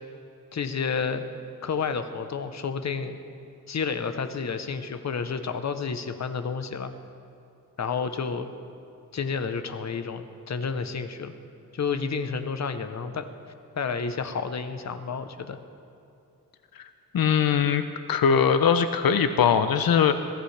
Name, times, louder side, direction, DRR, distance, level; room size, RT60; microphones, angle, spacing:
voice 1, 0.5-1.3 1.6-3.2 3.7-6.9 7.8-8.5 9.1-11.3 11.7-13.3 13.7-15.6, left 5 dB, 50° left, 9 dB, 0.9 m, -30 dB
voice 2, 17.1-20.1, left 7 dB, 85° left, 9 dB, 0.7 m, -21 dB
22.5 x 16.0 x 3.4 m, 2.7 s
wide cardioid pair, 110°, 35 cm